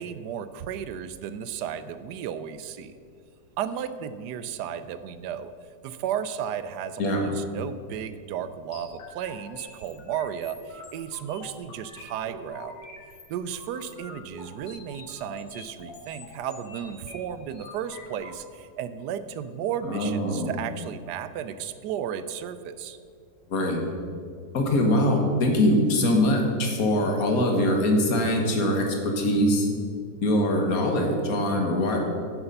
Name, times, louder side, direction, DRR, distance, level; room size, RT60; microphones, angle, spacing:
voice 1, 0.0-2.9 3.6-5.5 5.8-12.8 13.3-23.0, right 9 dB, 75° right, 13 dB, 1.1 m, -34 dB
voice 2, 7.0-7.3 19.8-20.6 23.5-23.9 24.5-29.7 30.2-32.0, left 1 dB, 55° left, 2 dB, 1.8 m, -23 dB
sound 1, 8.7-18.3, left 3 dB, 85° left, 2.1 m, -46 dB
9.9 x 7.3 x 5.4 m, 2.2 s
omnidirectional pair, 1.9 m